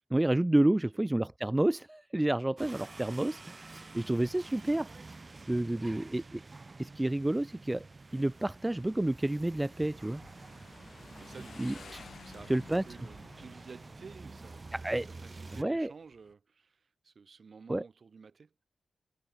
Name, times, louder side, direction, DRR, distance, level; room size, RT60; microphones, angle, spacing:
voice 1, 0.1-4.9 5.5-6.4 6.8-7.8 8.1-10.2 11.6-12.0 12.5-12.8 14.7-15.1 15.6-15.9 17.7-17.8, right 1 dB, 20° right, 0.4 m, -29 dB
sound 1, 2.6-15.6, right 3 dB, 40° right, 4.1 m, -49 dB
voice 2, 5.3-6.1 11.2-14.8 15.1-18.5, right 5 dB, 60° right, 6.0 m, -52 dB
Motorcycle, 8.1-16.3, left 6 dB, 70° left, 7.4 m, -55 dB
cardioid pair, 50°, 0 cm